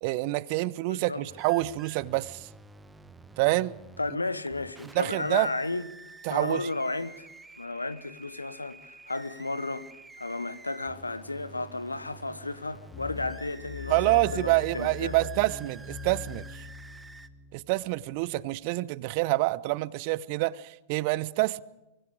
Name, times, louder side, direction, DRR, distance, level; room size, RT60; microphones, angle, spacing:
voice 1, 0.0-2.5 3.4-3.8 4.9-5.5 6.2-6.7 13.9-16.6 17.5-21.6, right 20 dB, 45° right, 0.6 m, -27 dB
voice 2, 0.9-1.2 4.0-5.9 6.3-7.3 7.6-9.9 10.2-15.2, left 2 dB, 80° left, 1.0 m, -33 dB
sound 1, 1.3-17.3, right 3 dB, 10° right, 1.1 m, -50 dB
sound 2, 12.9-18.2, left 6 dB, 35° left, 4.5 m, -42 dB
24.5 x 24.0 x 5.0 m
figure-of-eight pair, 90°, 0 cm